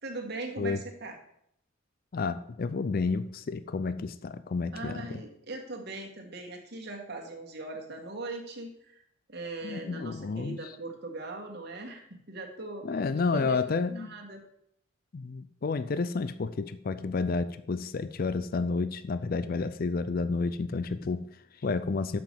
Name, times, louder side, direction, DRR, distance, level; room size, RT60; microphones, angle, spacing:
voice 1, 0.0-1.2 4.7-8.9 9.3-12.9 13.3-13.6 14.0-14.4, right 2 dB, 50° right, 1 dB, 1.8 m, -40 dB
voice 2, 2.1-5.2 9.6-10.7 12.8-14.2 15.1-22.2, left 4 dB, 45° left, 13 dB, 0.4 m, -31 dB
6.8 x 6.0 x 7.5 m, 0.72 s
head